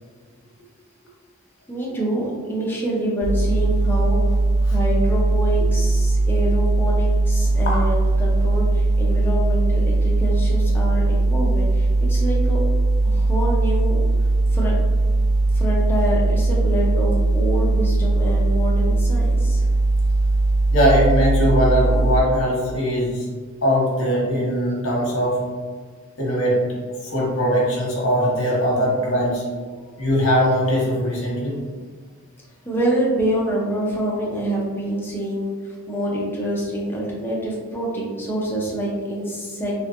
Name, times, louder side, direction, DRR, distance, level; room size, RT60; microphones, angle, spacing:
voice 1, 1.7-12.6 13.0-14.0 14.5-14.7 15.5-19.7 32.6-39.7, right 1 dB, 10° left, -4 dB, 0.6 m, -26 dB
sound 1, 3.2-22.2, right 2 dB, 30° left, 1.1 m, -19 dB
voice 2, 20.7-23.3 23.6-25.4 26.2-26.6 27.0-29.4 30.0-31.6, equal, 55° left, -4 dB, 1.1 m, -20 dB
3.3 x 3.1 x 2.5 m, 1.5 s
head